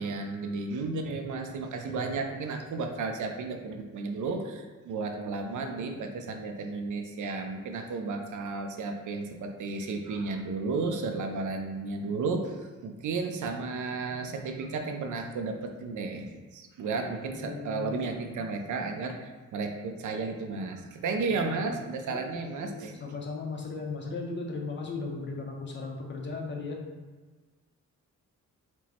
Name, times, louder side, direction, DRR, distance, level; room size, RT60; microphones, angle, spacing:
voice 1, 0.0-23.0, right 3 dB, 65° right, 4 dB, 0.5 m, -33 dB
voice 2, 17.4-18.0 21.3-21.6 22.1-26.8, left 3 dB, 35° left, 0 dB, 0.6 m, -37 dB
4.5 x 2.1 x 4.2 m, 1.3 s
wide cardioid pair, 170°, 32 cm